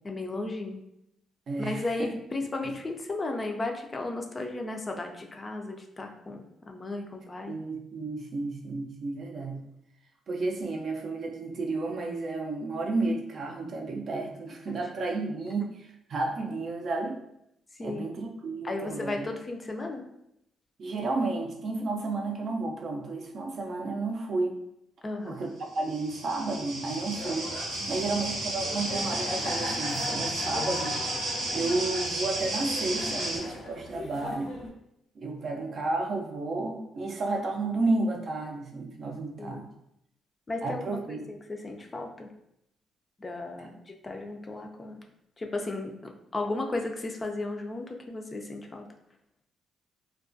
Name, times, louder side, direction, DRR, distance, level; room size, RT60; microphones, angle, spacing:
voice 1, 0.0-0.8 1.6-7.5 14.7-14.8 17.8-18.1 18.6-20.0 25.0-25.4 27.8-28.1 39.4-39.7 40.5-42.3 43.2-43.7 44.0-45.0 45.4-48.8, left 2 dB, 30° left, 3 dB, 0.3 m, -35 dB
voice 2, 1.5-2.1 7.5-9.6 10.3-17.2 17.8-19.3 20.8-24.6 25.3-27.5 27.9-31.0 31.5-34.5 35.2-39.7 40.6-41.2 43.6-43.7, right 3 dB, 55° right, 2 dB, 0.4 m, -32 dB
sound 1, 25.7-33.4, right 1 dB, 85° right, 0.7 m, -33 dB
sound 2, 27.1-34.7, left 2 dB, 75° left, 0.6 m, -39 dB
2.3 x 2.2 x 2.5 m, 0.79 s
cardioid pair, 90°, 0 cm